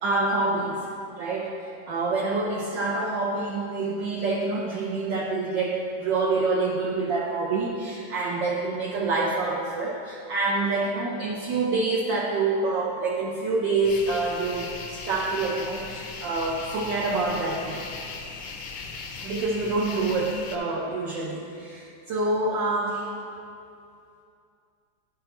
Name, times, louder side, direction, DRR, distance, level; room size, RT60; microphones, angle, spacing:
voice 1, 0.0-0.9 1.2-17.8 19.2-23.1, right 3 dB, 70° right, -3 dB, 1.1 m, -27 dB
sound 1, 13.8-20.6, left 4 dB, 70° left, 1.3 m, -38 dB
11.0 x 5.6 x 2.9 m, 2.5 s
omnidirectional pair, 2.4 m